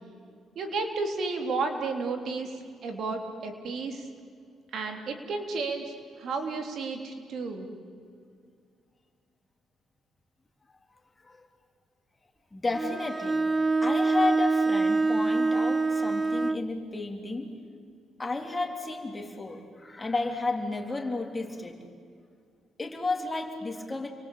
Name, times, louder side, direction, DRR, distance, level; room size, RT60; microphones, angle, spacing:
voice 1, 0.6-2.5 2.8-4.1 4.7-7.7, right 3 dB, 65° right, 4 dB, 3.6 m, -32 dB
voice 2, 12.5-13.4 13.8-17.6 18.2-21.8 22.8-24.1, left 3 dB, 20° left, 3 dB, 3.7 m, -32 dB
Bowed string instrument, 12.7-16.7, right 3 dB, 20° right, 0.6 m, -25 dB
30.0 x 23.0 x 8.7 m, 2.2 s
cardioid pair, 90°, 0 cm